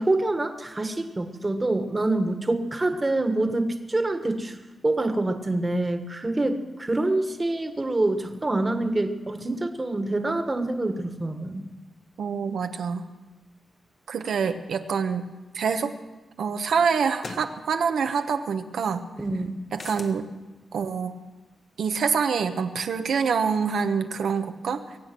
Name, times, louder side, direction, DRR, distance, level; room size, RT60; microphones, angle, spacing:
voice 1, 0.0-4.6 4.8-11.7 19.2-19.6, right 2 dB, 25° right, 7 dB, 1.5 m, -26 dB
voice 2, 12.2-13.0 14.1-15.9 16.4-19.1 19.7-20.3 20.7-21.2 21.8-24.8, right 6 dB, 80° right, 7 dB, 1.1 m, -26 dB
sound 1, 17.2-17.5 19.7-20.2, left 3 dB, 50° left, 1.2 m, -38 dB
22.5 x 8.6 x 6.1 m, 1.1 s
cardioid pair, 90°, 0 cm